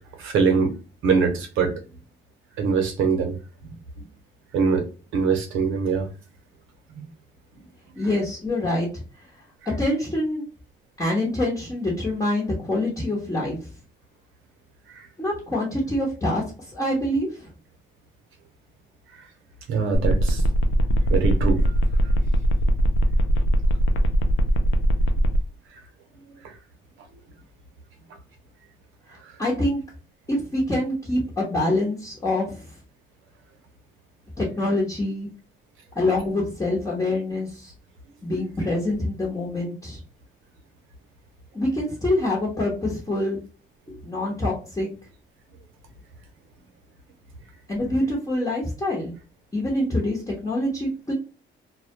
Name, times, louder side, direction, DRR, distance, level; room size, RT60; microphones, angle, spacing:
voice 1, 0.2-0.7 1.0-1.7 2.6-3.4 4.5-4.9 5.1-6.1 7.0-7.1 15.0-15.1 19.7-20.4 21.1-21.7, right 5 dB, 85° right, 0.7 m, -22 dB
voice 2, 8.0-9.3 9.8-10.4 11.0-13.7 15.2-17.5 29.1-29.8 30.3-32.7 34.4-35.3 35.9-37.7 38.2-40.0 41.5-43.4 44.0-44.9 47.7-49.1 49.5-51.1, left 1 dB, 15° left, 0.9 m, -25 dB
sound 1, 19.9-25.4, equal, 85° left, 0.4 m, -21 dB
2.2 x 2.1 x 2.7 m
cardioid pair, 90°, 20 cm